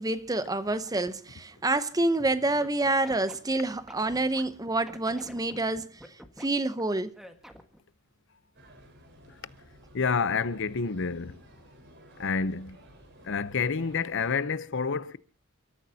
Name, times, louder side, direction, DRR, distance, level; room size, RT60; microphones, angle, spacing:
voice 1, 0.0-7.1, right 2 dB, 15° right, 0.8 m, -28 dB
Scratching (performance technique), 2.5-4.4 4.9-6.5 7.1-7.8, equal, ahead, 1.5 m, -47 dB
sound 1, 8.5-14.4, equal, 55° right, 4.4 m, -54 dB
voice 2, 9.9-11.4 12.2-12.8 13.2-15.2, left 5 dB, 60° left, 0.7 m, -28 dB
29.5 x 13.5 x 2.8 m
head